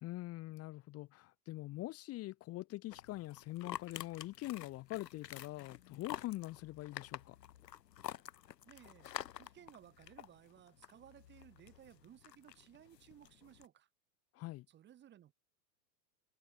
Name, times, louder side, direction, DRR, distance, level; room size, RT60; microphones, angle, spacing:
voice 1, 0.0-7.4 14.4-14.6, left 17 dB, 30° left, 2.5 m, -44 dB
sound 1, 2.9-13.7, left 11 dB, 85° left, 4.0 m, -49 dB
voice 2, 8.6-9.1 9.4-13.9 14.7-15.3, right 11 dB, 20° right, 3.8 m, -59 dB
supercardioid pair, 150°, 48 cm